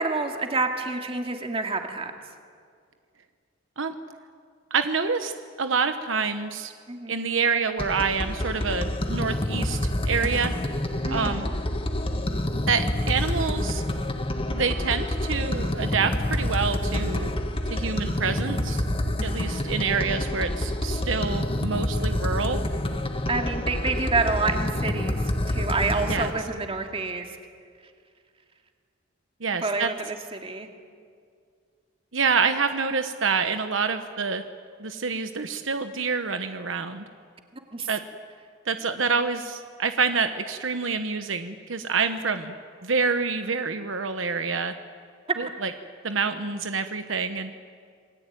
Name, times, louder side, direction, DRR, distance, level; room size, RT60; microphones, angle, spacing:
voice 1, 0.0-2.1 6.9-7.2 11.0-11.4 23.3-27.4 29.6-30.7 37.7-37.9, right 3 dB, 30° right, 4 dB, 2.4 m, -28 dB
voice 2, 4.7-5.3 5.6-6.7 7.1-10.5 11.1-11.5 12.7-13.8 14.5-17.3 17.7-18.8 19.2-22.6 26.1-26.3 29.4-29.9 32.1-34.4 34.8-37.0 37.9-38.0 38.7-42.5 42.8-44.7 45.4-45.7 46.0-47.5, right 5 dB, 70° right, 8 dB, 1.2 m, -27 dB
sound 1, 7.8-26.3, left 1 dB, 30° left, 1.7 m, -27 dB
27.0 x 21.5 x 9.3 m, 2.2 s
head